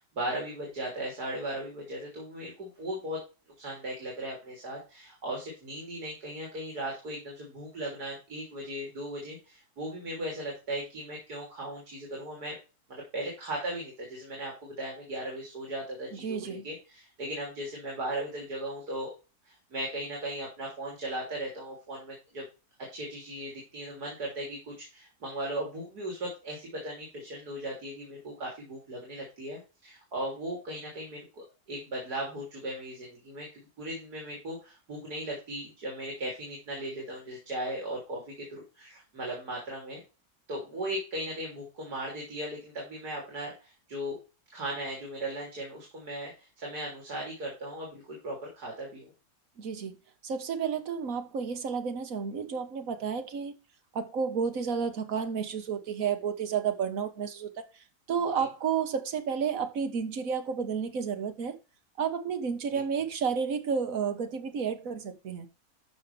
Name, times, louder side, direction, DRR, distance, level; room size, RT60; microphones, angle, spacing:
voice 1, 0.0-3.2 3.6-12.6 12.9-19.1 19.4-22.4 22.9-40.0 40.5-44.2 44.5-49.1 58.4-58.5 62.7-62.8, right 1 dB, 80° right, 3.7 m, -37 dB
voice 2, 16.1-16.6 49.6-49.9 50.2-53.5 53.9-57.7 58.1-61.6 62.0-65.4, right 6 dB, 60° right, 1.7 m, -31 dB
13.0 x 5.5 x 3.4 m
omnidirectional pair, 1.6 m